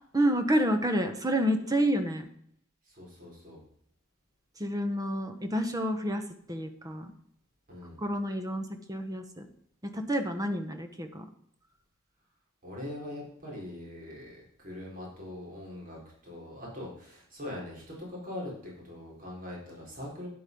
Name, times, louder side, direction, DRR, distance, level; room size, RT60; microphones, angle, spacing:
voice 1, 0.1-2.3 4.6-7.1 8.0-9.5 9.8-11.3, equal, 15° right, 7 dB, 1.0 m, -29 dB
voice 2, 2.8-3.6 7.7-8.0 12.6-20.3, left 1 dB, 40° right, -3 dB, 4.2 m, -42 dB
9.6 x 8.1 x 5.3 m, 0.67 s
head